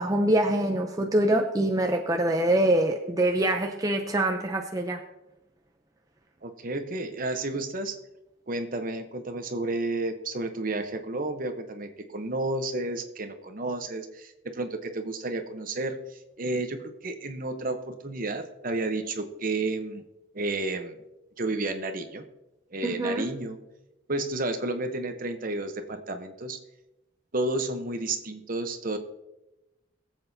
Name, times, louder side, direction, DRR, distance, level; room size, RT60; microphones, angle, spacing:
voice 1, 0.0-5.0 22.8-23.3, right 1 dB, 15° right, 3 dB, 0.5 m, -24 dB
voice 2, 6.4-8.0 8.5-20.0 20.3-20.9 21.4-22.2 22.7-23.6 24.1-26.6 27.3-29.0, right 2 dB, 45° right, 7 dB, 0.9 m, -31 dB
21.5 x 7.8 x 2.7 m, 0.97 s
head